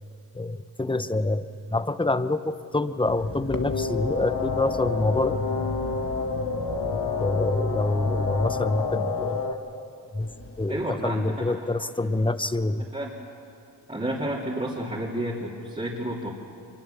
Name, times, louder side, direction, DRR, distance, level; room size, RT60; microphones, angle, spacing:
voice 1, 0.3-5.4 7.2-9.4 10.1-10.3 10.6-12.9, left 2 dB, 10° left, 13 dB, 0.8 m, -26 dB
sound 1, 3.0-9.5 10.2-10.9, left 4 dB, 30° left, 1.3 m, -36 dB
sound 2, 3.5-9.5, left 4 dB, 55° left, 1.9 m, -29 dB
voice 2, 10.7-11.2 11.6-11.7 12.0-12.2 12.9-13.1 13.9-16.3, right 1 dB, 15° right, -6 dB, 3.2 m, -31 dB
24.0 x 22.0 x 7.1 m, 2.6 s
cardioid pair, 60°, 42 cm